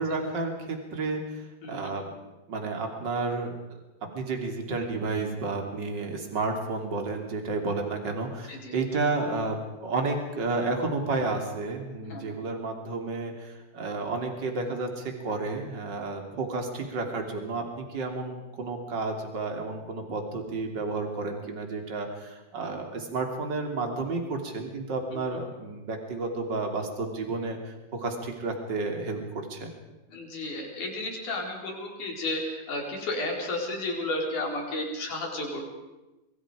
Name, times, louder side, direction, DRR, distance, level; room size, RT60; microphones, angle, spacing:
voice 1, 0.0-2.1 2.5-3.5 4.1-29.7, right 3 dB, 30° right, 3 dB, 3.3 m, -31 dB
voice 2, 1.6-1.9 8.5-8.7 12.1-12.4 25.1-25.2 30.1-35.6, left 2 dB, 55° left, 0 dB, 5.7 m, -33 dB
26.0 x 22.5 x 5.1 m, 1.1 s
omnidirectional pair, 4.3 m